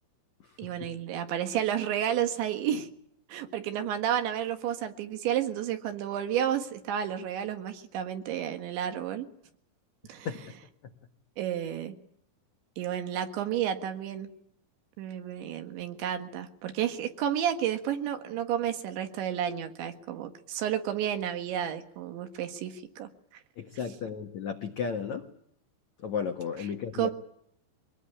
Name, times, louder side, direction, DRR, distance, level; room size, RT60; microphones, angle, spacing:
voice 1, 0.6-2.9 3.3-9.3 10.1-10.3 11.4-12.0 12.8-14.3 15.0-23.1 26.9-27.1, right 10 dB, 65° right, 8 dB, 3.7 m, -31 dB
voice 2, 23.6-25.3 26.0-27.1, left 6 dB, 75° left, 5 dB, 1.6 m, -33 dB
24.5 x 19.5 x 10.0 m, 0.70 s
omnidirectional pair, 5.9 m